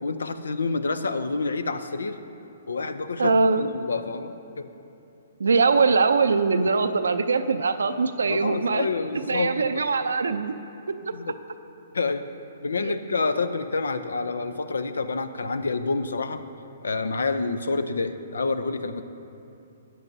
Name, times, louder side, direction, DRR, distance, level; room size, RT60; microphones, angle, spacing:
voice 1, 0.0-2.2 2.7-4.7 8.3-9.8 11.1-11.3 11.9-12.2 12.6-16.4 16.8-19.0, left 3 dB, 90° left, 11 dB, 0.5 m, -28 dB
voice 2, 3.2-3.6 5.4-8.9 9.3-10.6 10.9-11.2, right 4 dB, 85° right, 10 dB, 0.5 m, -22 dB
13.0 x 9.3 x 2.7 m, 2.8 s
hypercardioid pair, 140°, 0 cm